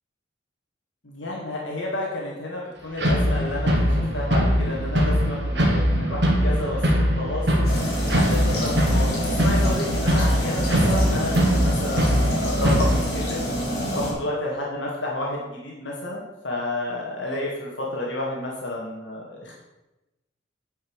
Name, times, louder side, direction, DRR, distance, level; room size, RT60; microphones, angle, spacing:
voice 1, 1.0-7.7 8.1-13.4 13.9-19.6, left 1 dB, 75° left, -3 dB, 1.9 m, -30 dB
sound 1, 3.0-13.0, equal, 60° right, 1.9 m, -22 dB
sound 2, 7.7-14.1, equal, 55° left, 3.0 m, -28 dB
8.8 x 5.4 x 6.4 m, 1.0 s
head